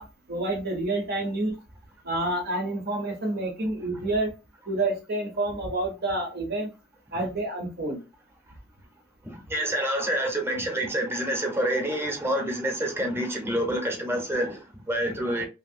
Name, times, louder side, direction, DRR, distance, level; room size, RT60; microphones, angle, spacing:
voice 1, 0.0-1.6 2.0-4.3 4.7-6.7 7.1-8.0, right 2 dB, 55° right, 0.7 m, -28 dB
voice 2, 9.2-15.5, right 1 dB, 10° right, 0.8 m, -27 dB
2.8 x 2.7 x 2.5 m
head